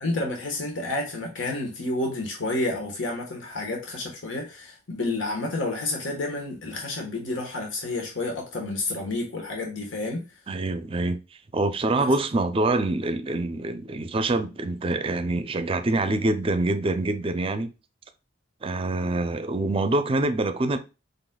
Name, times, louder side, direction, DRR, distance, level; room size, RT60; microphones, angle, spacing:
voice 1, 0.0-10.2 11.9-12.1, left 2 dB, 85° left, 1.3 m, -30 dB
voice 2, 10.5-11.2 11.5-17.7 18.6-20.8, right 2 dB, 30° right, 0.5 m, -25 dB
5.2 x 4.0 x 2.3 m
head